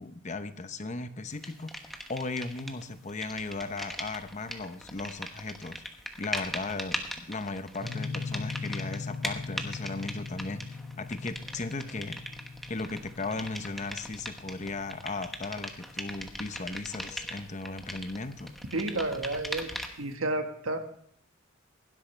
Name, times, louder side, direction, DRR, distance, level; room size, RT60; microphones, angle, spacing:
voice 1, 0.0-5.8 6.2-12.2 12.7-18.6, left 3 dB, 35° left, 10 dB, 0.8 m, -37 dB
sound 1, 1.4-2.8 3.1-20.1, equal, ahead, 1.1 m, -40 dB
sound 2, 7.8-16.5, left 4 dB, 60° left, 4.0 m, -40 dB
voice 2, 18.7-19.7 20.0-20.8, right 2 dB, 85° right, 6 dB, 1.6 m, -31 dB
16.5 x 12.0 x 3.3 m, 0.63 s
head